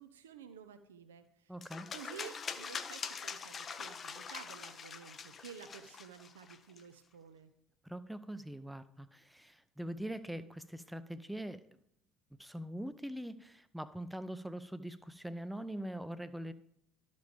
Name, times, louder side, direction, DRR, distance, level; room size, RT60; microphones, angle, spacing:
voice 1, 0.0-1.5 1.9-7.5, right 7 dB, 75° right, 9 dB, 0.5 m, -52 dB
voice 2, 1.5-1.9 7.8-11.6 12.4-16.5, right 1 dB, 5° right, 12 dB, 0.6 m, -43 dB
sound 1, 1.6-6.8, left 6 dB, 35° left, 0.6 m, -44 dB
12.5 x 5.2 x 3.4 m, 0.77 s
figure-of-eight pair, 60°, 0 cm